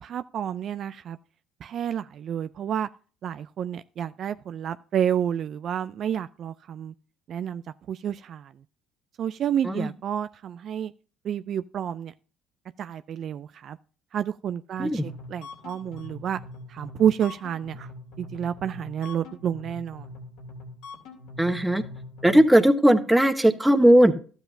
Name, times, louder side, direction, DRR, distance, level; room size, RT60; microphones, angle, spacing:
voice 1, 0.0-1.2 1.6-2.9 3.2-6.9 7.3-7.6 7.9-8.5 9.2-10.9 11.2-12.1 12.8-13.8 14.1-16.4 16.7-17.9 18.2-20.1, right 9 dB, 55° right, 0.3 m, -29 dB
sound 1, 14.7-22.4, left 2 dB, 80° left, 3.1 m, -43 dB
voice 2, 21.4-21.8 22.2-24.1, right 1 dB, 5° right, 1.1 m, -18 dB
12.5 x 8.0 x 2.6 m
supercardioid pair, 70°, 0 cm